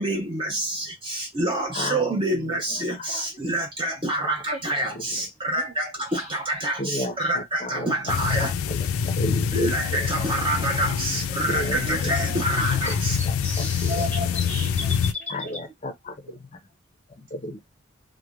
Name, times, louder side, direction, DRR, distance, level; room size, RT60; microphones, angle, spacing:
voice 1, 0.0-8.5 9.5-13.2, right 1 dB, 25° right, 0.5 m, -27 dB
voice 2, 1.7-3.2 5.1-5.2 6.8-10.1 11.5-12.1 13.3-14.1 15.3-16.3 17.2-17.6, left 1 dB, 30° left, 0.5 m, -34 dB
sound 1, 8.1-15.1, left 7 dB, 90° left, 0.4 m, -26 dB
voice 3, 11.8-12.7 13.5-15.6 16.3-16.4, right 1 dB, 40° right, 0.9 m, -36 dB
sound 2, 12.8-15.6, left 2 dB, 10° left, 0.8 m, -35 dB
3.1 x 2.1 x 2.2 m
head